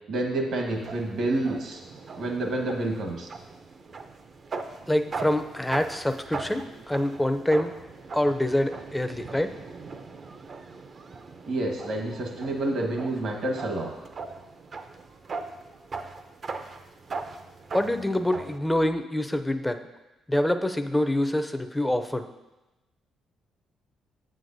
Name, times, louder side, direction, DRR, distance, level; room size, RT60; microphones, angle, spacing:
voice 1, 0.1-1.8 2.1-3.3 11.5-13.9, right 2 dB, 65° right, 1 dB, 1.3 m, -28 dB
sound 1, 0.7-18.6, right 4 dB, 45° right, 0.5 m, -40 dB
voice 2, 4.9-7.7 8.1-9.5 17.7-19.8 20.3-22.3, left 1 dB, 10° left, 9 dB, 0.5 m, -26 dB
7.8 x 7.7 x 2.6 m, 1.1 s
cardioid pair, 90°, 0 cm